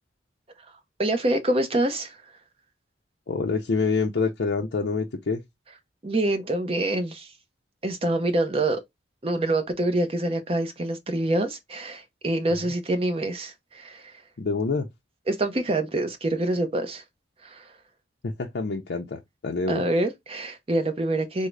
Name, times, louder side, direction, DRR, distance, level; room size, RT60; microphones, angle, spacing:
voice 1, 0.6-2.3 6.0-7.3 7.8-8.8 9.2-14.2 15.3-17.0 17.4-17.8 19.7-21.5, right 1 dB, 30° right, 0.6 m, -26 dB
voice 2, 3.3-5.4 14.4-14.9 18.2-19.8, left 4 dB, 60° left, 0.5 m, -26 dB
3.6 x 2.0 x 3.1 m
head